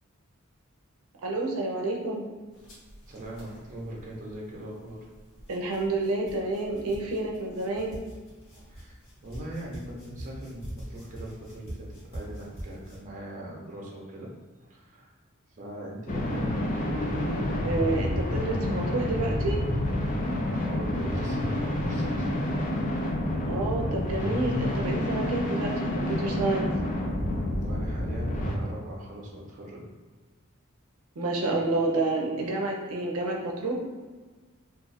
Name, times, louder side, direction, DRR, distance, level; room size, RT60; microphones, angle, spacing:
voice 1, 1.2-2.2 5.5-7.9 17.6-19.6 23.5-26.6 31.2-33.7, right 2 dB, 85° right, 0 dB, 0.5 m, -29 dB
sound 1, 2.5-13.0, right 1 dB, 60° left, 1.2 m, -45 dB
voice 2, 3.1-5.1 8.7-14.3 14.6-15.1 15.5-17.0 20.6-22.5 27.6-29.9, right 1 dB, 35° right, -3 dB, 0.7 m, -41 dB
sound 2, 16.1-28.6, left 1 dB, 35° left, 0.5 m, -28 dB
2.5 x 2.5 x 3.9 m, 1.3 s
head